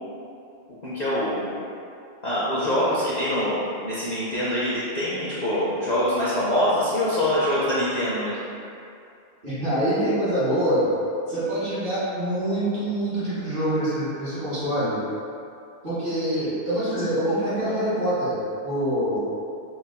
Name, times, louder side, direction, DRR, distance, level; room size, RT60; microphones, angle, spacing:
voice 1, 0.8-1.5 2.2-8.4, left 1 dB, 50° left, -9 dB, 0.5 m, -24 dB
voice 2, 9.4-10.9 11.3-15.0 15.8-18.3 18.6-19.2, right 1 dB, 55° right, -13 dB, 1.9 m, -25 dB
5.2 x 2.6 x 2.2 m, 2.5 s
omnidirectional pair, 1.2 m